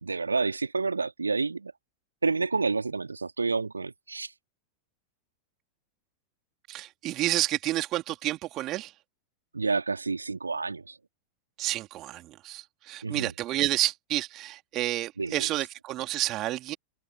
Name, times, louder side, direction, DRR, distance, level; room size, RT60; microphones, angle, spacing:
voice 1, 0.0-1.7 2.2-4.3 9.5-10.9 13.0-13.3 15.2-15.5, right 4 dB, 80° right, 2.5 m, -29 dB
voice 2, 6.7-8.9 11.6-16.8, right 15 dB, 35° right, 3.5 m, -30 dB
figure-of-eight pair, 90°, 0 cm